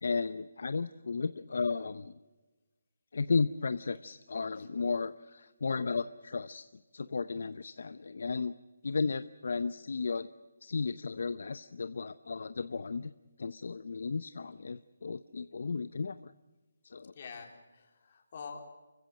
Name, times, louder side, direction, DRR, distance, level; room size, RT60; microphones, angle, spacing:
voice 1, 0.0-2.1 3.1-6.6 6.9-8.5 8.8-10.3 10.6-13.1 13.4-16.3 16.8-17.1, left 4 dB, 55° left, 13 dB, 0.7 m, -34 dB
voice 2, 17.1-18.6, left 5 dB, 30° left, 3 dB, 3.6 m, -46 dB
29.5 x 15.5 x 7.5 m, 1.2 s
hypercardioid pair, 175°, 0 cm